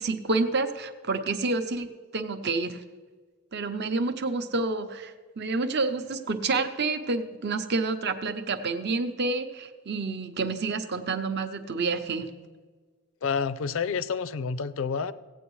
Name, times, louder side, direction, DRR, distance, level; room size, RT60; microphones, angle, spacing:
voice 1, 0.0-2.8 3.5-12.3, right 3 dB, 50° right, 8 dB, 0.7 m, -29 dB
voice 2, 13.2-15.1, left 5 dB, 60° left, 15 dB, 0.4 m, -29 dB
16.5 x 8.9 x 3.1 m, 1.4 s
head